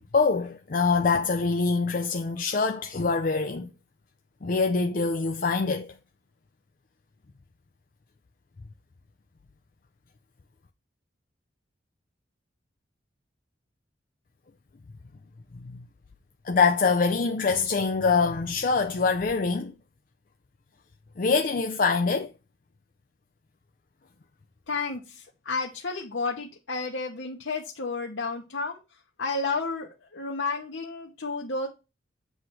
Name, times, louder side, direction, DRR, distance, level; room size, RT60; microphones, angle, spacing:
voice 1, 0.1-3.7 4.4-6.0 15.5-15.8 16.4-19.7 21.2-22.3, left 4 dB, 45° left, 0.5 m, -24 dB
voice 2, 24.7-28.8 29.2-31.7, left 3 dB, 90° left, 1.0 m, -31 dB
8.0 x 3.2 x 5.9 m
head